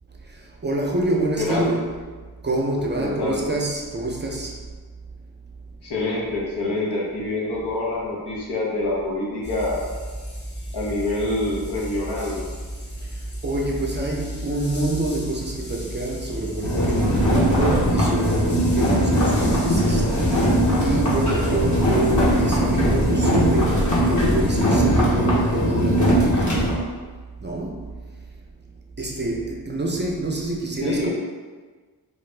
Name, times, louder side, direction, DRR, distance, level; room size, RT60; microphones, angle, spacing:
voice 1, 0.6-1.9 2.4-4.5 13.4-20.1 20.8-26.6 27.4-27.8 29.0-31.1, right 2 dB, 25° right, -1 dB, 0.5 m, -26 dB
voice 2, 3.0-3.4 5.8-9.8 10.7-12.4 30.8-31.1, left 2 dB, 80° left, -5 dB, 0.9 m, -26 dB
sound 1, 9.4-24.6, equal, 30° left, 0.6 m, -34 dB
sound 2, 16.6-26.7, equal, 45° left, 0.9 m, -20 dB
2.5 x 2.5 x 3.2 m, 1.4 s
cardioid pair, 60°, 40 cm